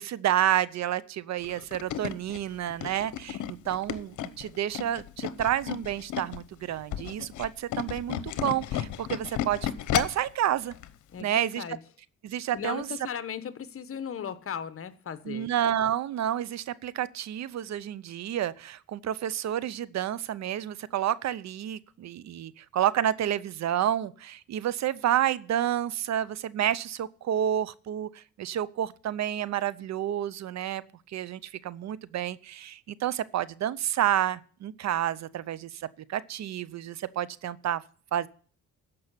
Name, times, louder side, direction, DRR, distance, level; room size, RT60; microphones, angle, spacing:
voice 1, 0.0-10.7 11.2-11.6 12.2-12.9 15.3-30.8 31.1-37.8 38.1-38.3, right 11 dB, 60° right, 0.7 m, -30 dB
Tools, 1.4-6.4 6.8-10.3 10.7-10.9 11.2-11.3, left 11 dB, 75° left, 0.9 m, -33 dB
voice 2, 11.1-11.8 12.5-15.5, left 8 dB, 45° left, 1.2 m, -37 dB
13.5 x 5.5 x 8.2 m
cardioid pair, 90°, 30 cm